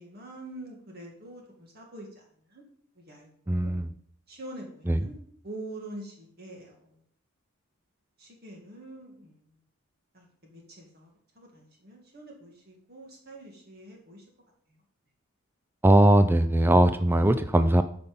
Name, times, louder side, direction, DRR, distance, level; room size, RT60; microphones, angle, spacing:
voice 1, 0.0-2.2 2.5-2.6 3.1-3.7 4.3-5.2 5.4-6.7 8.2-9.4 10.1-11.1 11.4-14.2, right 1 dB, 45° right, 0 dB, 2.2 m, -45 dB
voice 2, 3.5-3.9 4.9-5.1 15.8-17.8, right 1 dB, 10° right, 9 dB, 0.4 m, -20 dB
13.0 x 5.5 x 5.4 m, 0.63 s
head